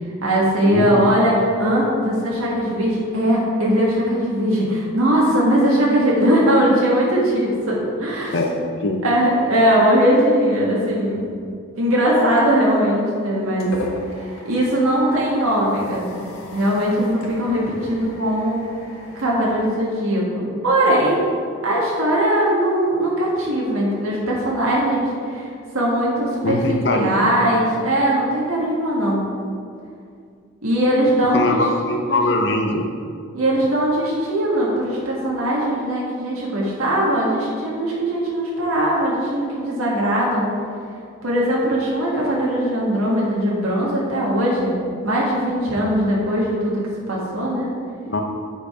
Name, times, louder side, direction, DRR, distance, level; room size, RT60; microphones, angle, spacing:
voice 1, 0.2-8.4 9.0-11.3 11.8-13.7 14.4-16.1 16.5-18.6 19.1-21.3 21.6-25.5 25.7-29.2 30.6-31.6 32.1-32.4 33.3-40.5 41.2-44.7 45.0-47.7, right 1 dB, 90° right, -4 dB, 1.8 m, -20 dB
sound 1, 12.9-20.3, left 1 dB, 80° left, 1.4 m, -37 dB
voice 2, 26.4-27.3 31.3-32.9 48.1-48.2, left 2 dB, 55° left, 2 dB, 0.7 m, -21 dB
8.8 x 5.3 x 5.0 m, 2.2 s
head